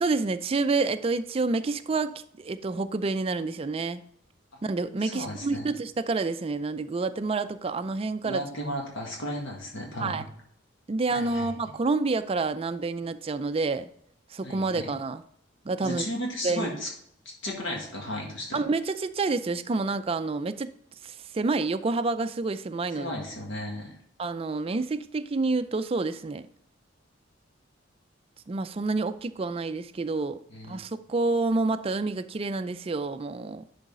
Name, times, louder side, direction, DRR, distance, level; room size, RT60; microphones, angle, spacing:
voice 1, 0.0-4.0 4.6-8.4 10.0-10.2 10.9-13.9 14.3-15.2 15.7-16.0 16.4-16.8 18.5-20.7 21.0-23.1 24.2-26.5 28.5-30.4 30.7-33.6, right 3 dB, 30° right, 0.4 m, -28 dB
voice 2, 5.0-5.7 8.2-10.3 11.1-11.5 14.4-14.9 15.8-16.9 17.4-18.6 23.0-24.0 30.5-30.8, left 1 dB, 70° left, 1.8 m, -34 dB
10.5 x 4.0 x 3.7 m
head